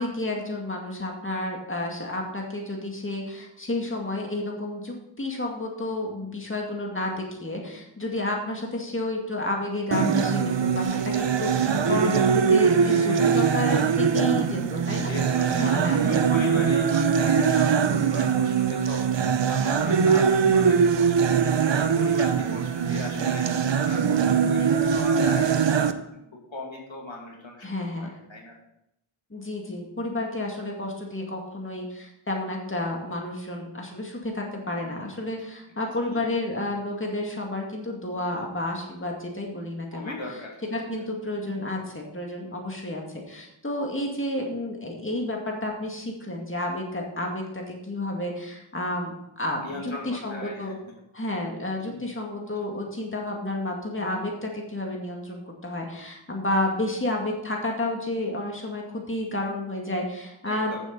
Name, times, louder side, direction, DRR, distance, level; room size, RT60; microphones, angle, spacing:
voice 1, 0.0-15.2 15.5-16.3 17.9-18.2 19.8-20.1 27.6-28.1 29.3-40.1 40.7-50.7 51.1-60.8, left 1 dB, 25° left, 0 dB, 2.2 m, -31 dB
sound 1, 9.9-25.9, right 6 dB, 60° right, 0.8 m, -22 dB
voice 2, 10.8-11.2 12.7-13.8 15.1-19.0 19.5-23.4 23.9-26.2 26.5-28.6 34.8-35.0 36.1-36.2 39.9-40.6 49.6-50.8 51.8-52.0 60.5-60.8, left 2 dB, 65° left, -1 dB, 2.4 m, -39 dB
9.0 x 7.5 x 5.3 m, 0.83 s
wide cardioid pair, 45°, 49 cm